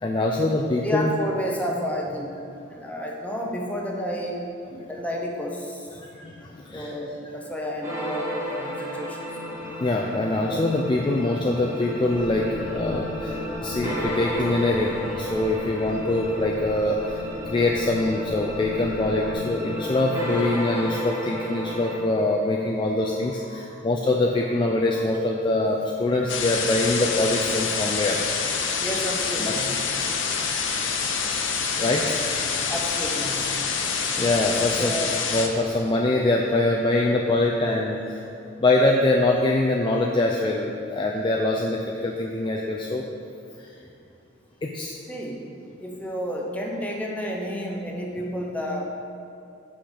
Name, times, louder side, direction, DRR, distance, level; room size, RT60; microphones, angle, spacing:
voice 1, 0.0-1.1 4.7-4.9 6.0-6.9 9.5-28.2 29.4-29.6 31.7-32.7 33.9-34.9 35.3-38.3 38.6-43.0 43.6-43.7 44.6-44.9, left 2 dB, 25° left, -1 dB, 0.4 m, -24 dB
voice 2, 0.8-4.4 4.8-6.0 6.7-9.2 28.8-29.7 32.7-33.6 34.8-35.1 45.1-45.4 45.8-48.9, equal, 10° left, -1 dB, 0.9 m, -31 dB
sound 1, 7.8-22.0, equal, 15° right, 1.5 m, -32 dB
sound 2, 12.0-19.3, right 1 dB, 65° right, 0.9 m, -42 dB
sound 3, 26.3-35.5, left 5 dB, 70° left, 0.7 m, -26 dB
6.0 x 5.0 x 6.4 m, 2.6 s
head